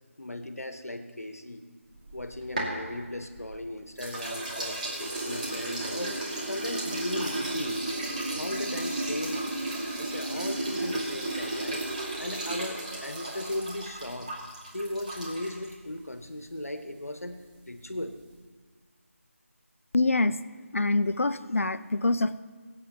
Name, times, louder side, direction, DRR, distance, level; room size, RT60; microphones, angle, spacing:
voice 1, 0.2-1.6 2.1-7.8 8.3-9.5 10.0-11.9 12.2-14.4 14.7-18.2, left 1 dB, 85° left, 8 dB, 1.2 m, -37 dB
sound 1, 2.0-3.6 4.0-15.7, right 2 dB, 35° right, 2.4 m, -34 dB
voice 2, 19.9-20.4 20.7-22.4, left 2 dB, 65° left, 15 dB, 0.5 m, -25 dB
22.5 x 8.5 x 3.0 m, 1.5 s
figure-of-eight pair, 165°, 8 cm